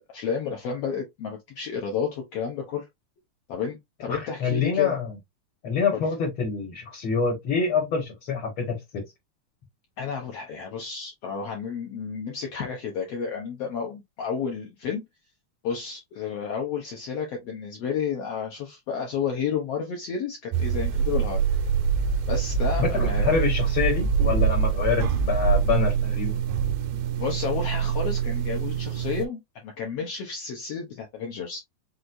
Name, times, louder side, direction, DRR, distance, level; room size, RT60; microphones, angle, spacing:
voice 1, 0.1-2.8 3.5-4.9 5.9-6.0 10.0-15.0 15.6-21.4 22.3-23.3 27.1-31.6, left 6 dB, 80° left, 1.4 m, -31 dB
voice 2, 4.1-5.1 5.6-9.0 22.8-26.4, left 5 dB, 45° left, 1.9 m, -26 dB
sound 1, 20.5-29.3, right 7 dB, 90° right, 2.5 m, -25 dB
6.2 x 2.5 x 2.6 m
omnidirectional pair, 4.0 m